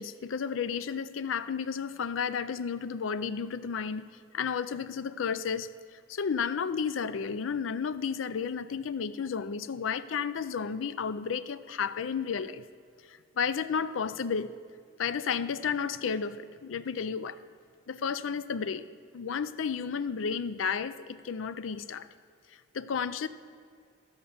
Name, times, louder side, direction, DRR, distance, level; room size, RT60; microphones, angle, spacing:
voice 1, 0.0-4.1 4.3-12.7 13.1-14.6 15.0-17.4 17.9-18.9 19.1-22.1 22.7-23.3, left 6 dB, 90° left, 15 dB, 0.5 m, -32 dB
13.5 x 5.2 x 7.0 m, 2.2 s
head